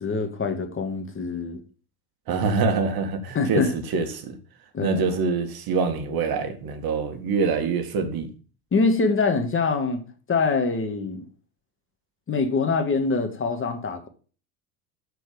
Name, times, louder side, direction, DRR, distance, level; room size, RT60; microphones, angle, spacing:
voice 1, 0.0-1.6 3.3-3.7 4.7-5.0 8.7-10.0 10.3-11.2 12.3-14.1, left 4 dB, 25° left, 1.7 m, -24 dB
voice 2, 2.3-4.4 4.8-8.3, right 4 dB, 50° right, 1.8 m, -25 dB
7.8 x 4.6 x 6.7 m
hypercardioid pair, 85°, 45 cm